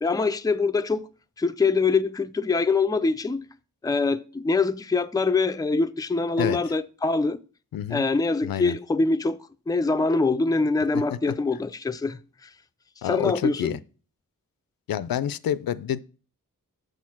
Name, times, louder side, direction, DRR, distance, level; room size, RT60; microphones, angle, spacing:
voice 1, 0.0-1.0 1.4-3.4 3.8-7.4 7.9-9.4 9.7-12.2 13.1-13.8, left 3 dB, 10° left, 0.4 m, -24 dB
voice 2, 7.7-8.0 8.4-8.8 10.9-11.0 13.0-13.8 14.9-16.0, left 10 dB, 80° left, 0.5 m, -28 dB
6.6 x 6.4 x 5.9 m
wide cardioid pair, 100°, 34 cm